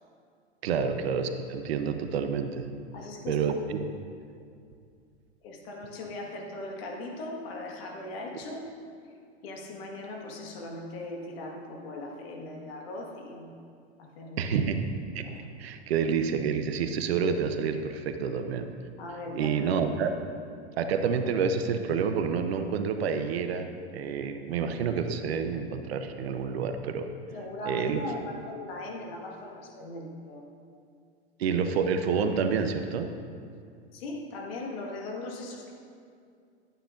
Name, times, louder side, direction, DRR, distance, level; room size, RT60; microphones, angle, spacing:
voice 1, 0.6-2.7 3.3-3.8 14.4-14.8 15.1-15.2 15.6-18.7 19.4-20.1 20.8-27.1 27.7-28.0 31.4-33.1, right 6 dB, 65° right, 8 dB, 0.8 m, -28 dB
voice 2, 2.9-3.4 5.4-8.6 9.4-13.5 14.0-14.5 15.2-15.4 19.0-19.8 27.3-30.4 33.9-35.7, left 2 dB, 60° left, 1 dB, 1.7 m, -39 dB
11.5 x 9.0 x 2.6 m, 2.4 s
hypercardioid pair, 100°, 33 cm